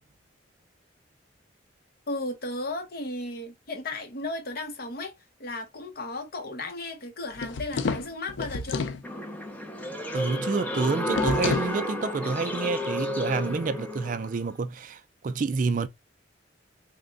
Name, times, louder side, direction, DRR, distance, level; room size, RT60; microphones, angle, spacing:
voice 1, 2.1-8.8, left 2 dB, 50° left, 0.9 m, -35 dB
sound 1, 7.3-9.0 11.1-11.8, left 4 dB, 80° left, 0.4 m, -30 dB
sound 2, 9.0-14.4, left 1 dB, 10° left, 0.6 m, -31 dB
voice 2, 10.1-15.9, right 4 dB, 45° right, 0.3 m, -28 dB
3.4 x 2.2 x 3.8 m
head